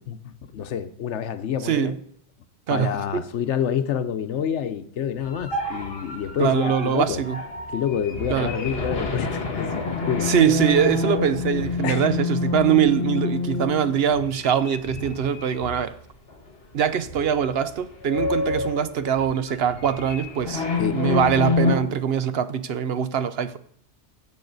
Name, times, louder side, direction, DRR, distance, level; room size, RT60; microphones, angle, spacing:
voice 1, 0.1-2.0 2.7-7.2 7.7-10.3 11.8-12.1 20.8-21.0, left 8 dB, 90° left, 1.1 m, -28 dB
voice 2, 1.6-2.0 2.7-3.2 6.4-7.4 8.3-8.5 10.2-16.0 16.7-20.6 20.9-23.6, right 8 dB, 65° right, 0.9 m, -23 dB
sound 1, 5.2-15.9 16.3-16.5 17.0-17.4 17.7-21.8, left 4 dB, 60° left, 1.9 m, -28 dB
16.5 x 7.2 x 4.0 m
omnidirectional pair, 1.2 m